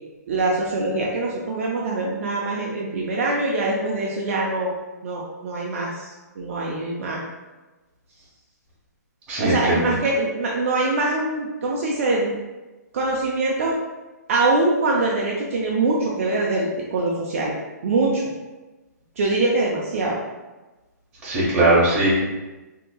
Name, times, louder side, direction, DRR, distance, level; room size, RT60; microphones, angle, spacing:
voice 1, 0.3-4.7 5.0-7.2 9.4-12.3 12.9-13.7 14.3-17.5 17.8-18.2 19.2-20.2, right 2 dB, 50° right, -3 dB, 0.5 m, -23 dB
voice 2, 9.3-9.9 21.2-22.1, right 2 dB, 15° right, -8 dB, 1.0 m, -19 dB
3.8 x 2.8 x 2.3 m, 1.1 s
hypercardioid pair, 165°, 10 cm